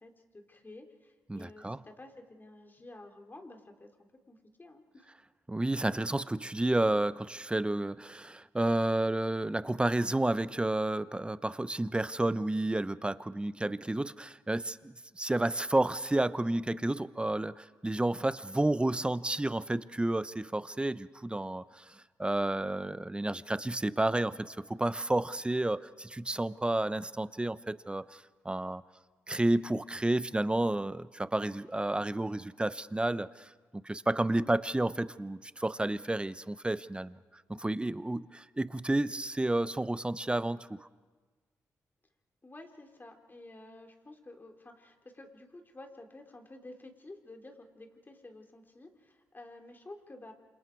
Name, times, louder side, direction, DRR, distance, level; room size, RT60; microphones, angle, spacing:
voice 1, 0.0-3.9 4.3-5.1 42.4-50.3, left 2 dB, 30° left, 4 dB, 3.5 m, -51 dB
voice 2, 1.3-1.8 5.5-28.8 29.3-37.2 37.5-40.9, right 1 dB, 15° right, 15 dB, 0.9 m, -31 dB
28.0 x 27.0 x 4.7 m, 1.4 s
supercardioid pair, 45°, 7 cm